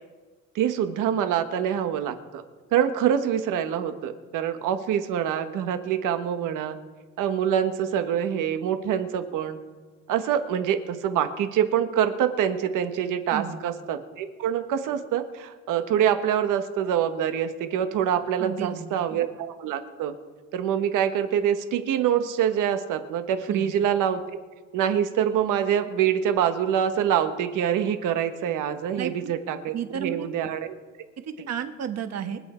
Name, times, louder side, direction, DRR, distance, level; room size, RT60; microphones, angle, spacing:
voice 1, 0.5-2.4 2.7-6.8 7.2-9.6 10.1-19.3 19.6-20.1 20.5-24.2 24.7-30.7, right 9 dB, 85° right, 8 dB, 1.4 m, -25 dB
voice 2, 18.4-19.0 23.5-23.7 29.0-29.3 29.7-30.3 31.2-32.4, right 8 dB, 55° right, 8 dB, 1.4 m, -32 dB
25.0 x 8.3 x 4.4 m, 1.4 s
cardioid pair, 120°, 30 cm